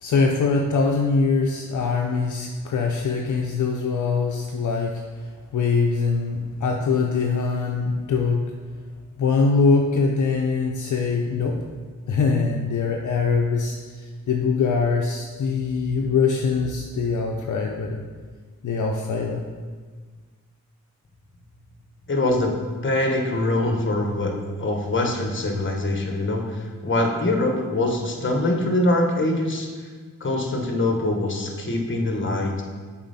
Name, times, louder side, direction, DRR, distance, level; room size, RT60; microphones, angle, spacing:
voice 1, 0.0-8.4 9.2-11.6 12.1-18.0 18.6-19.4, left 4 dB, 65° left, 1 dB, 0.6 m, -23 dB
voice 2, 22.1-22.5 22.8-24.3 24.6-29.7 30.2-32.6, left 2 dB, 35° left, 2 dB, 1.1 m, -23 dB
7.0 x 4.4 x 4.1 m, 1.5 s
cardioid pair, 70°, 32 cm